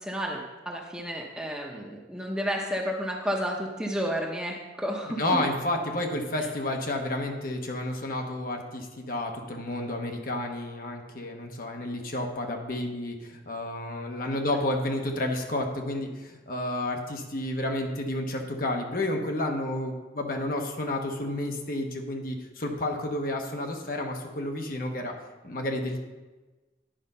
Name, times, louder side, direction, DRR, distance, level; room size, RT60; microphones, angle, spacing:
voice 1, 0.0-5.2, equal, 5° right, -1 dB, 0.9 m, -31 dB
voice 2, 5.2-25.1 25.4-26.0, left 1 dB, 50° left, 3 dB, 1.0 m, -31 dB
10.5 x 4.9 x 5.5 m, 1.2 s
head